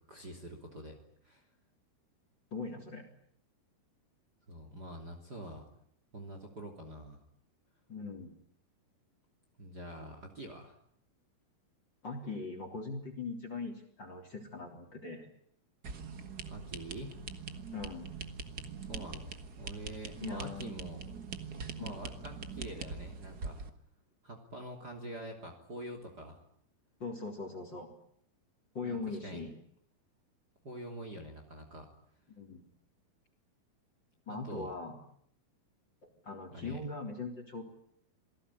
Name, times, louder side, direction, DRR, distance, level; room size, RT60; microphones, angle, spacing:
voice 1, 0.1-1.0 1.2-1.4 4.5-5.7 6.1-7.2 9.6-10.7 16.4-17.2 18.9-21.1 21.7-23.6 24.2-26.4 28.8-29.4 30.6-31.9 34.3-34.7 36.5-36.8, right 1 dB, 25° right, 4 dB, 3.4 m, -45 dB
voice 2, 2.5-3.0 7.9-8.3 12.0-15.3 17.7-18.1 20.2-20.8 21.8-22.0 27.0-27.9 28.7-29.5 32.3-32.6 34.3-35.0 36.2-37.6, left 3 dB, 30° left, 6 dB, 3.7 m, -40 dB
sound 1, 15.8-23.7, right 4 dB, 70° right, 0.9 m, -43 dB
27.5 x 18.5 x 10.0 m, 0.70 s
omnidirectional pair, 4.5 m